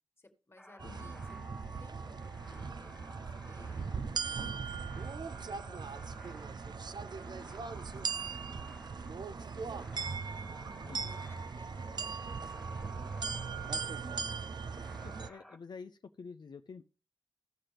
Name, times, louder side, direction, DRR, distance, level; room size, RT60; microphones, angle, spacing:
voice 1, 0.2-1.4 1.8-5.1 5.5-8.4 9.3-14.8, left 2 dB, 35° left, 4 dB, 1.6 m, -61 dB
sound 1, 0.6-15.6, left 1 dB, ahead, 0.9 m, -56 dB
voice 2, 0.8-1.6 10.8-11.4 15.0-16.9, left 5 dB, 75° left, 7 dB, 0.5 m, -49 dB
sound 2, 0.8-15.3, right 5 dB, 70° right, 0.4 m, -39 dB
15.5 x 5.9 x 3.3 m, 0.34 s
wide cardioid pair, 95°, 8 cm